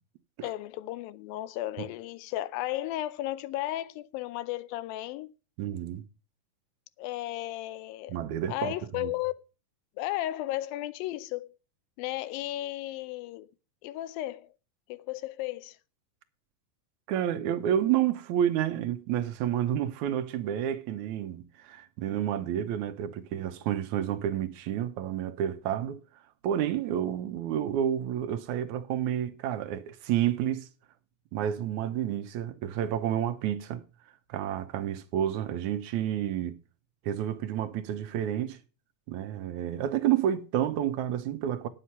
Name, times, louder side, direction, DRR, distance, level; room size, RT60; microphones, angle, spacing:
voice 1, 0.4-5.3 7.0-8.2 8.5-9.3 10.0-11.5 12.0-13.5 13.8-14.5 14.9-15.8, left 15 dB, 85° left, 2.4 m, -34 dB
voice 2, 5.6-6.1 8.1-9.1 17.1-26.0 26.4-30.7 31.3-33.8 34.3-36.6 37.0-38.6 39.1-41.7, right 10 dB, 70° right, 2.0 m, -30 dB
9.8 x 7.7 x 5.6 m
omnidirectional pair, 4.1 m